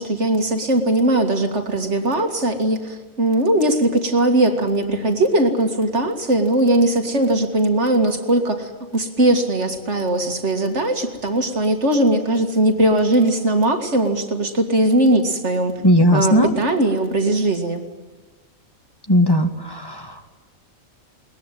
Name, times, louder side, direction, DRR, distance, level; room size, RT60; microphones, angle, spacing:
voice 1, 0.0-15.8 16.1-17.8, right 1 dB, 55° right, 5 dB, 2.4 m, -19 dB
voice 2, 15.8-16.5 19.1-20.0, equal, 15° left, 5 dB, 1.7 m, -16 dB
21.0 x 20.5 x 9.1 m, 1.3 s
omnidirectional pair, 1.4 m